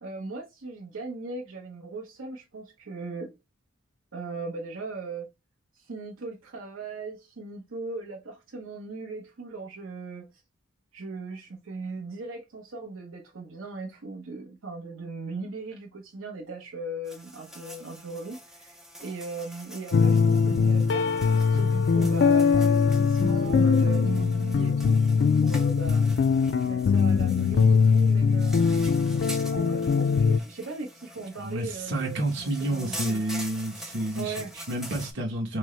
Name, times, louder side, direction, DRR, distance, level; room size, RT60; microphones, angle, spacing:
voice 1, 0.0-3.3 4.1-5.3 5.7-10.3 10.9-25.0 25.3-26.1 26.7-28.7 29.3-33.2 34.2-34.5, right 3 dB, 85° right, 0.8 m, -38 dB
sound 1, 17.0-35.1, equal, ahead, 0.5 m, -44 dB
sound 2, 19.9-30.4, left 5 dB, 55° left, 0.3 m, -22 dB
voice 2, 31.4-34.3 34.7-35.6, right 1 dB, 65° right, 1.2 m, -29 dB
6.0 x 2.1 x 3.1 m
head